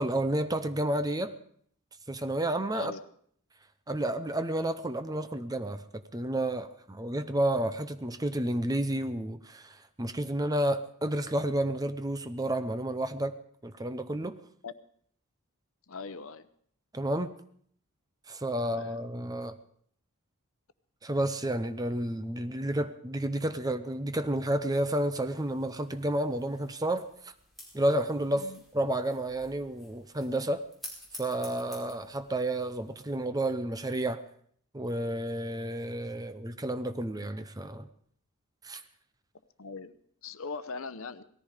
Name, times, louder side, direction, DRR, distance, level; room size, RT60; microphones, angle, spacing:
voice 1, 0.0-1.3 2.1-2.9 3.9-13.3 13.6-14.4 16.9-17.3 18.3-19.5 21.0-27.0 27.7-28.5 28.7-30.7 31.2-34.2 34.7-37.9 38.6-38.8, right 1 dB, 15° right, 0.7 m, -31 dB
voice 2, 15.9-16.5 18.6-19.0 28.3-28.6 32.9-33.0 39.6-40.0 40.2-41.2, left 4 dB, 65° left, 0.8 m, -40 dB
sound 1, 25.0-33.2, left 1 dB, ahead, 4.7 m, -52 dB
18.5 x 14.0 x 5.0 m
head